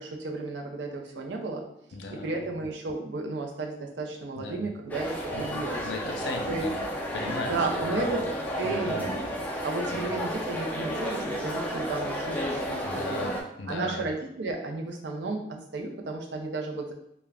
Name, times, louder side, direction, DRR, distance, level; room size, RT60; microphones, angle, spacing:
voice 1, 0.0-1.6 2.1-5.8 6.5-6.7 7.2-8.2 8.6-9.3 9.6-13.3 13.7-16.9, right 3 dB, 90° right, 2 dB, 0.5 m, -33 dB
voice 2, 1.9-2.5 4.4-4.7 5.3-6.8 7.1-8.2 8.6-9.1 9.9-10.2 12.8-14.1, left 3 dB, 75° left, 3 dB, 0.5 m, -37 dB
sound 1, 4.9-13.4, equal, 10° left, 0.3 m, -32 dB
2.4 x 2.1 x 3.3 m, 0.80 s
head